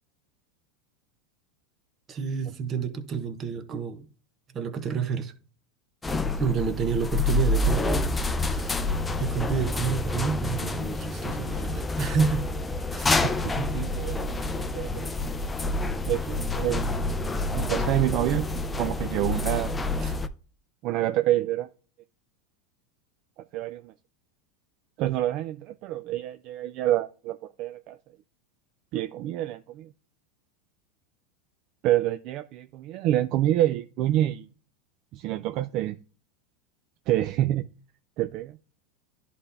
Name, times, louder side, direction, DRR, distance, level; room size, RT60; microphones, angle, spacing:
voice 1, 2.1-4.1 4.5-5.3 6.4-8.1 8.4-12.5 12.9-13.1 20.0-20.2, right 6 dB, 30° right, 1.1 m, -29 dB
sound 1, 6.0-20.3, left 2 dB, 10° left, 0.5 m, -28 dB
voice 2, 13.6-15.2 16.1-16.9 17.5-18.5 18.8-19.7 20.8-21.7 23.5-23.9 25.0-28.0 28.9-29.9 31.8-34.5 35.1-36.0 37.1-37.7 38.2-38.6, right 14 dB, 50° right, 0.4 m, -27 dB
11.0 x 4.2 x 3.5 m
supercardioid pair, 130°, 0 cm